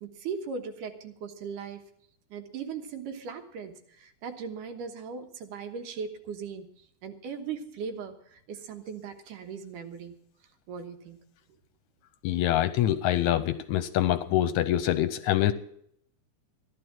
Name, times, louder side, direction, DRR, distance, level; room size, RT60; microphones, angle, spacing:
voice 1, 0.0-1.8 2.3-6.7 7.0-10.2 10.7-11.2, right 6 dB, 80° right, 6 dB, 2.8 m, -38 dB
voice 2, 12.2-15.5, left 12 dB, 75° left, 12 dB, 1.9 m, -25 dB
14.5 x 11.0 x 5.9 m, 0.67 s
omnidirectional pair, 3.7 m